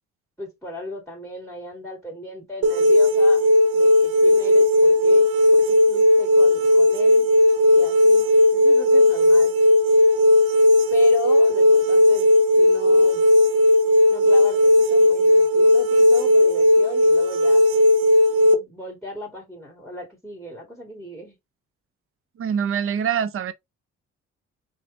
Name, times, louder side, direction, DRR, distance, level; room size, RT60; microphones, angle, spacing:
voice 1, 0.4-3.5 3.7-7.3 7.7-9.5 10.9-12.3 12.6-13.2 14.1-17.6 18.4-21.4, left 1 dB, ahead, 1.8 m, -36 dB
sound 1, 2.6-18.5, left 1 dB, 85° right, 0.8 m, -16 dB
voice 2, 22.4-23.5, right 8 dB, 45° right, 0.6 m, -24 dB
4.1 x 2.5 x 3.2 m
cardioid pair, 90°, 30 cm